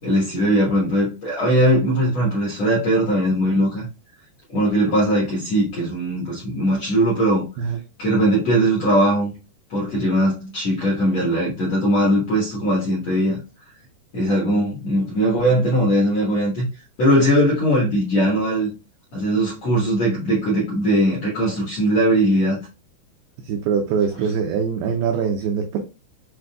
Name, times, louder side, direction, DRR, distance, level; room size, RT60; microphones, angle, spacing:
voice 1, 0.0-3.9 4.5-7.4 8.0-9.3 9.7-13.3 14.1-16.7 17.0-18.7 19.1-22.6, right 1 dB, 65° left, 1.6 m, -20 dB
voice 2, 23.4-25.8, right 6 dB, 85° right, 2.2 m, -23 dB
7.5 x 2.5 x 2.3 m
omnidirectional pair, 5.1 m